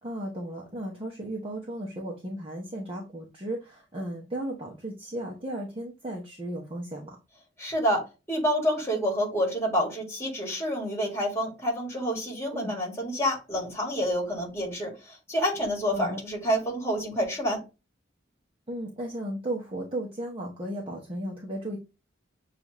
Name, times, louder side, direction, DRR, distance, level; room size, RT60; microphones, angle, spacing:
voice 1, 0.0-7.2 12.5-12.7 15.9-16.2 18.7-21.8, right 1 dB, 30° right, -2 dB, 0.8 m, -35 dB
voice 2, 7.6-17.6, equal, 15° left, -1 dB, 1.8 m, -28 dB
6.9 x 2.4 x 3.0 m, 0.28 s
head